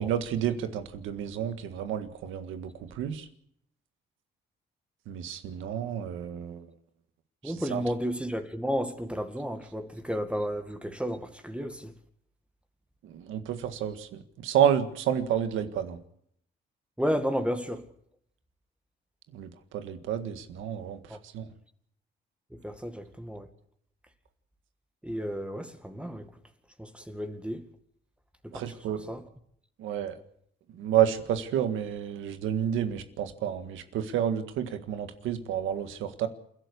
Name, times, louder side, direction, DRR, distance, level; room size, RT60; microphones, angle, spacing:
voice 1, 0.0-3.3 5.1-6.7 7.4-7.8 13.0-16.0 19.3-21.0 21.3-21.5 28.5-29.0 29.8-30.2 30.7-36.3, right 9 dB, 90° right, 1.8 m, -30 dB
voice 2, 7.4-11.9 17.0-17.8 21.1-21.2 22.6-23.5 25.0-26.3 26.8-27.6 28.4-28.7 29.1-29.2, equal, 5° right, 2.1 m, -32 dB
28.5 x 11.5 x 8.3 m
cardioid pair, 90°, 20 cm